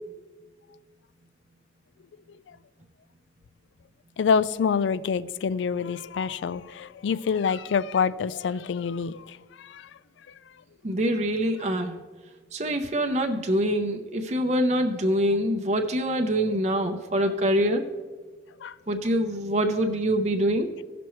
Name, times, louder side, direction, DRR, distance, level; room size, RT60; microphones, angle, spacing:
voice 1, 4.2-10.0 10.3-10.6 18.6-18.8, left 6 dB, 85° left, 17 dB, 0.4 m, -27 dB
voice 2, 10.8-12.0 12.5-17.8 18.9-20.7, equal, 40° right, 4 dB, 0.7 m, -25 dB
16.5 x 6.0 x 3.1 m, 1.4 s
head